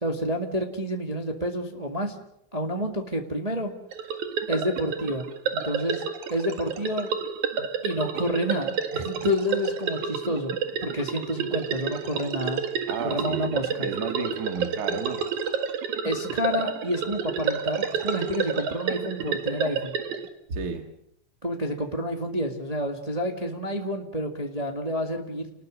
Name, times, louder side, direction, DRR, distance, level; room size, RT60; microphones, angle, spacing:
voice 1, 0.0-2.2 2.5-3.7 4.5-5.3 5.5-6.0 6.3-7.1 7.8-12.6 13.0-13.9 16.0-19.9 21.4-25.5, equal, 15° right, 3 dB, 1.5 m, -29 dB
sound 1, 3.9-20.3, right 6 dB, 80° right, 3.2 m, -30 dB
voice 2, 12.9-15.2 20.5-20.9, right 5 dB, 35° right, 6 dB, 2.1 m, -32 dB
29.5 x 20.0 x 6.4 m, 0.74 s
omnidirectional pair, 3.3 m